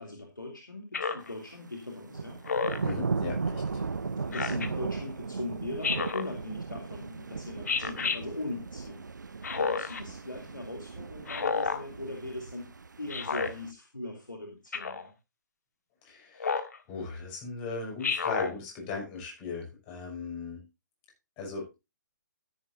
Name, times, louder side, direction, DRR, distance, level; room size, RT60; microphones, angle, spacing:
voice 1, 0.0-2.4 4.2-12.7 13.0-15.1, left 2 dB, 80° left, 2 dB, 2.9 m, -40 dB
Speech synthesizer, 0.9-1.3 2.5-2.9 4.3-4.7 5.8-6.3 7.7-8.2 9.4-10.0 11.3-11.8 13.1-13.5 14.7-15.1 16.4-16.8 18.0-18.5, left 5 dB, 55° left, 1.7 m, -30 dB
sound 1, 2.1-13.7, right 4 dB, 65° right, 0.6 m, -37 dB
voice 2, 2.8-3.8 16.0-16.6 16.9-20.7 21.4-21.7, left 4 dB, 25° left, 0 dB, 6.6 m, -38 dB
13.5 x 11.0 x 2.7 m, 0.25 s
figure-of-eight pair, 135°, 10 cm